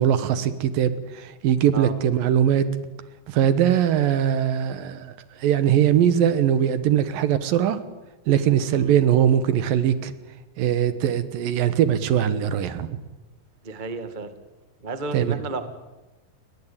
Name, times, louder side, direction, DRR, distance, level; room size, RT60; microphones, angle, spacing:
voice 1, 0.0-2.6 3.3-5.1 5.4-7.8 8.3-10.1 10.6-13.0 15.1-15.3, right 9 dB, 70° right, 13 dB, 2.8 m, -21 dB
voice 2, 13.6-14.3 14.8-15.6, right 3 dB, 40° right, 9 dB, 0.6 m, -32 dB
29.0 x 22.0 x 8.8 m, 1.1 s
omnidirectional pair, 4.6 m